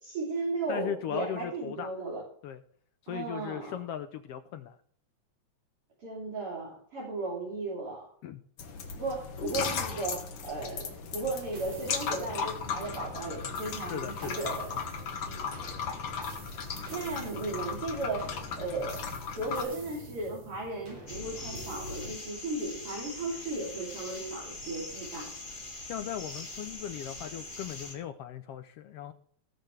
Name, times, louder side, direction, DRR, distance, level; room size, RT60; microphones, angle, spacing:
voice 1, 0.0-2.2 3.1-3.8 6.0-8.1 8.9-14.8 15.3-15.5 16.9-18.2 18.6-19.0 19.4-25.3, right 2 dB, 50° right, -6 dB, 4.1 m, -35 dB
voice 2, 0.7-1.9 2.4-2.6 3.0-4.8 8.2-8.4 13.9-14.3 25.9-29.1, left 9 dB, 75° left, 10 dB, 1.4 m, -38 dB
sound 1, 8.6-19.7, left 6 dB, 55° left, 2.1 m, -36 dB
sound 2, 11.3-22.1, right 1 dB, 70° right, 5.2 m, -46 dB
sound 3, 21.1-28.0, left 2 dB, 20° left, 1.6 m, -43 dB
19.0 x 6.6 x 3.3 m, 0.63 s
omnidirectional pair, 3.3 m